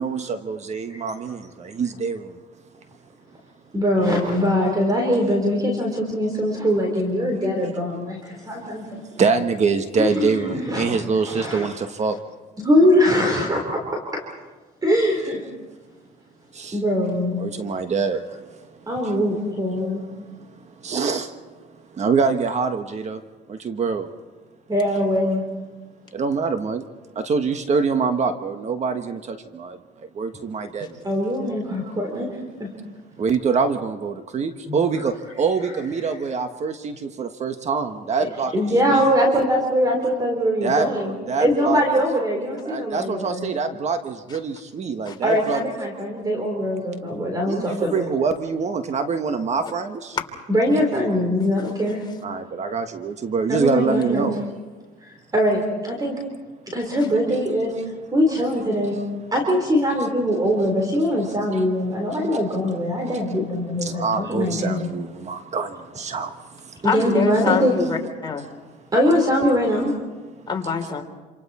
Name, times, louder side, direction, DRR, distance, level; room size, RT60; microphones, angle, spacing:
voice 1, 0.0-2.2 9.2-12.1 16.6-16.7 17.4-18.2 19.8-19.9 20.8-21.3 22.0-23.2 23.5-24.1 26.1-26.8 27.2-29.8 30.2-30.9 33.2-38.5 38.9-39.1 40.6-40.9 41.3-41.8 42.7-45.6 47.5-50.0 52.2-54.4 56.2-56.3 57.1-57.4 58.3-58.4 63.8-65.7 66.0-66.3, right 5 dB, 40° right, 8 dB, 1.3 m, -24 dB
voice 2, 3.7-9.2 10.0-11.7 12.6-13.6 14.8-15.4 16.7-17.4 18.9-20.0 24.7-25.4 31.0-32.7 34.7-34.8 38.5-43.5 45.2-48.0 50.5-52.0 53.5-54.3 55.0-56.2 56.7-57.7 58.1-59.0 59.3-64.9 66.8-67.7 68.9-69.9, equal, 20° right, 1 dB, 3.9 m, -22 dB
voice 3, 66.8-68.5 70.5-71.0, left 5 dB, 25° left, 2 dB, 3.3 m, -26 dB
27.5 x 27.5 x 4.3 m, 1.3 s
cardioid pair, 110°, 17 cm